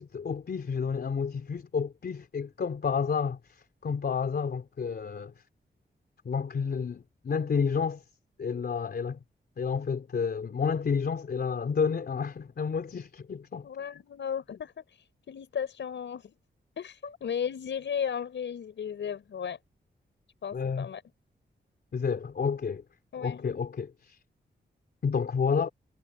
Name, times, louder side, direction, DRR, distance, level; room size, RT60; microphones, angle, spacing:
voice 1, 0.0-5.3 6.3-8.0 8.4-9.2 9.6-13.7 17.0-17.2 20.5-20.9 21.9-22.8 23.2-24.2 25.0-25.7, left 6 dB, 60° left, 3.5 m, -30 dB
voice 2, 13.6-16.3 16.8-19.6 20.4-21.0 23.1-23.4, left 8 dB, 85° left, 5.8 m, -35 dB
wide cardioid pair, 120°, 19 cm